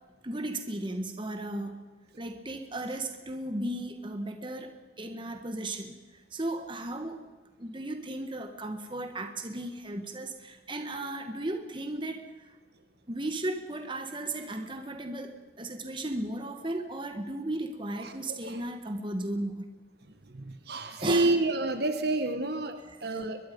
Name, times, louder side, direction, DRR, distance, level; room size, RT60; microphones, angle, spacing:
voice 1, 0.2-1.8 2.2-4.7 5.0-6.0 6.3-7.2 7.6-12.2 13.1-19.6 21.0-21.4 22.9-23.2, right 1 dB, 25° right, 6 dB, 1.6 m, -35 dB
voice 2, 20.3-23.4, right 2 dB, 55° right, 8 dB, 1.4 m, -29 dB
23.0 x 21.5 x 5.4 m, 1.3 s
head